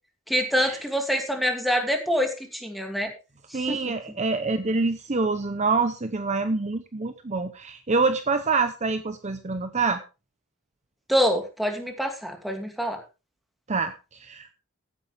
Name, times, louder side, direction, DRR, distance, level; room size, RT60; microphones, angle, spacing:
voice 1, 0.3-3.1 3.5-3.8 11.1-13.0, equal, ahead, 3 dB, 2.6 m, -25 dB
voice 2, 3.5-10.0 13.7-14.5, right 4 dB, 30° right, 9 dB, 0.8 m, -26 dB
16.0 x 10.0 x 3.5 m, 0.30 s
head